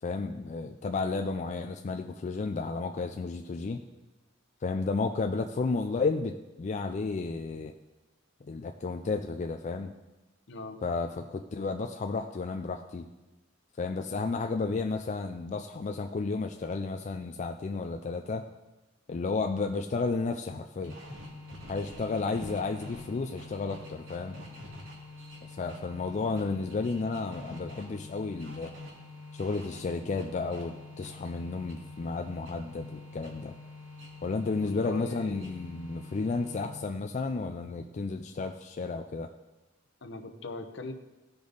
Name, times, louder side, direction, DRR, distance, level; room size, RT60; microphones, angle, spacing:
voice 1, 0.0-3.8 4.6-7.7 8.5-9.9 10.8-13.1 13.8-18.5 19.1-21.0 21.7-24.4 25.4-28.7 29.3-33.5 34.2-39.3, left 4 dB, 40° left, 5 dB, 0.4 m, -32 dB
voice 2, 10.5-10.8 34.6-35.5 40.0-40.9, left 3 dB, 65° left, 6 dB, 0.8 m, -40 dB
sound 1, 20.8-37.0, left 2 dB, 85° right, 2.2 m, -46 dB
15.5 x 5.2 x 3.9 m, 1.1 s
head